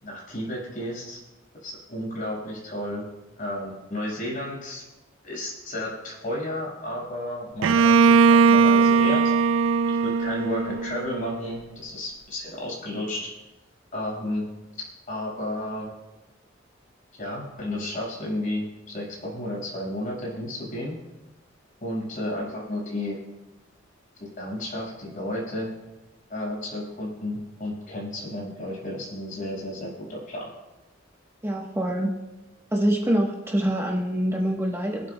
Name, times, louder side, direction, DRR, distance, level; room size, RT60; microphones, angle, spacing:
voice 1, 0.0-1.2 1.6-3.0 3.4-4.8 5.2-9.2 9.9-13.3 13.9-14.4 15.1-15.9 17.1-20.9 21.8-23.2 24.2-25.7 26.3-30.5, left 1 dB, 45° left, -4 dB, 5.6 m, -32 dB
Bowed string instrument, 7.6-11.4, right 5 dB, 90° right, 0.4 m, -19 dB
voice 2, 31.4-32.2 32.7-35.1, right 1 dB, 15° right, -1 dB, 1.1 m, -25 dB
26.0 x 12.5 x 2.3 m, 1.1 s
head